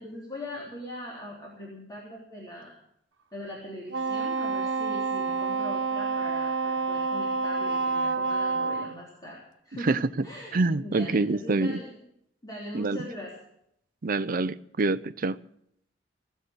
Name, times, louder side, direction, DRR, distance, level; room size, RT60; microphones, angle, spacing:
voice 1, 0.0-2.7 3.3-12.0 12.4-13.3, left 1 dB, 20° left, 3.6 m, -41 dB
Wind instrument woodwind instrument, 3.9-9.0, right 4 dB, 90° right, 1.2 m, -28 dB
voice 2, 9.8-10.3 10.5-11.8 12.7-13.1 14.0-15.4, right 3 dB, 50° right, 0.6 m, -26 dB
18.5 x 8.0 x 9.8 m
head